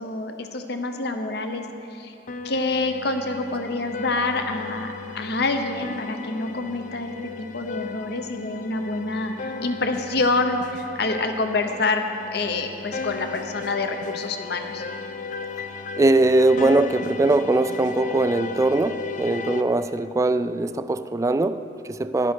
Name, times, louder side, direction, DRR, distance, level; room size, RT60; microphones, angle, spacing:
voice 1, 0.0-1.6 1.9-2.1 2.4-9.3 9.6-12.1 12.3-14.8, left 3 dB, 65° left, 6 dB, 0.9 m, -27 dB
sound 1, 2.3-19.6, left 4 dB, 45° left, 0.6 m, -35 dB
voice 2, 16.0-22.3, right 2 dB, 20° right, 12 dB, 0.3 m, -21 dB
15.5 x 11.0 x 4.5 m, 2.7 s
head